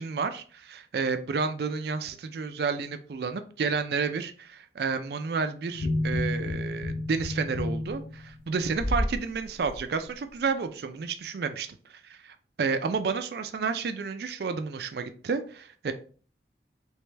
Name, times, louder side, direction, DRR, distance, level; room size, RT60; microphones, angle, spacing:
voice 1, 0.0-15.9, right 5 dB, 60° right, 9 dB, 0.4 m, -31 dB
sound 1, 5.7-9.2 9.6-9.8, left 1 dB, 70° left, 0.7 m, -30 dB
3.3 x 3.0 x 3.2 m, 0.42 s
head